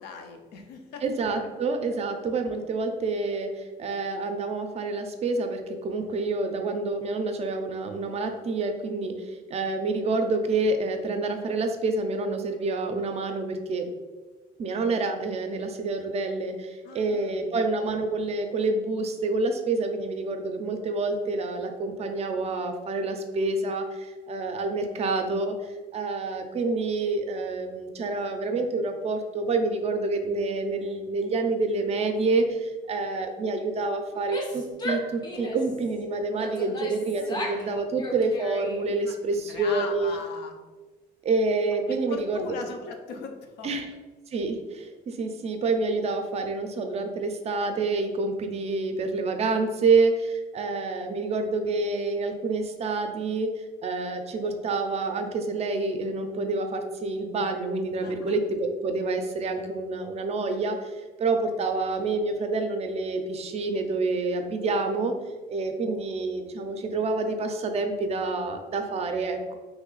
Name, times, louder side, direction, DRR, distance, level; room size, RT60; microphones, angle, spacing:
voice 1, 0.0-1.0 16.8-17.4 37.2-37.9 39.0-40.6 41.9-43.7 58.0-58.4, left 5 dB, 75° left, 4 dB, 0.5 m, -40 dB
voice 2, 1.0-3.5 3.8-5.6 5.8-9.1 9.5-13.8 14.6-16.5 17.0-23.8 24.3-25.5 25.9-32.4 32.9-34.4 34.8-40.2 41.3-42.6 43.6-43.8 44.3-44.5 45.2-50.1 50.5-53.5 53.8-60.7 61.2-65.1 65.5-69.6, right 3 dB, 40° right, 6 dB, 0.4 m, -27 dB
Female speech woman speaking / Yell, 34.1-35.8 36.4-37.7 38.0-38.9, left 1 dB, 25° left, 0.5 m, -35 dB
3.1 x 2.3 x 3.8 m, 1.3 s
cardioid pair, 110°, 17 cm